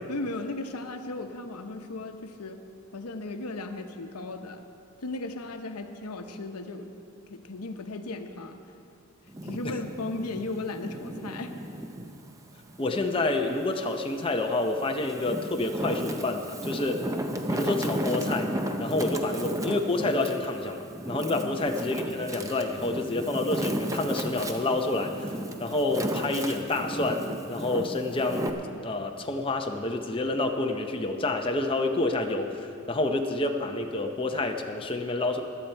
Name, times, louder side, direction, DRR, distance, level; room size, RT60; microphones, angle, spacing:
voice 1, 0.1-2.6 2.9-4.7 5.0-6.9 7.3-8.6 9.4-11.5 21.3-21.6, left 2 dB, 85° left, 6 dB, 0.9 m, -36 dB
Wind, 9.3-12.1 12.6-13.9 14.5-28.5, right 1 dB, 15° right, 0.6 m, -34 dB
voice 2, 12.8-17.0 17.5-18.5 18.8-25.3 25.6-28.5 28.8-35.4, left 2 dB, 25° left, 3 dB, 0.6 m, -28 dB
16.5 x 11.5 x 4.5 m, 2.6 s
head